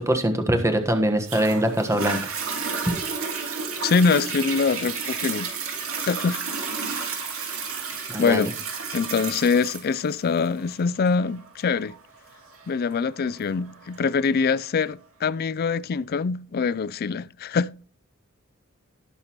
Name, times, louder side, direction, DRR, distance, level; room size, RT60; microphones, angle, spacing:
voice 1, 0.0-2.2 8.1-8.5, right 1 dB, 15° right, 1.3 m, -23 dB
Toilet flush, 1.3-14.3 14.9-15.0, right 5 dB, 70° right, 3.1 m, -32 dB
voice 2, 3.8-5.5 6.1-6.4 8.2-8.5 8.9-11.9 12.7-17.7, left 5 dB, 45° left, 0.4 m, -24 dB
19.0 x 6.6 x 3.0 m
head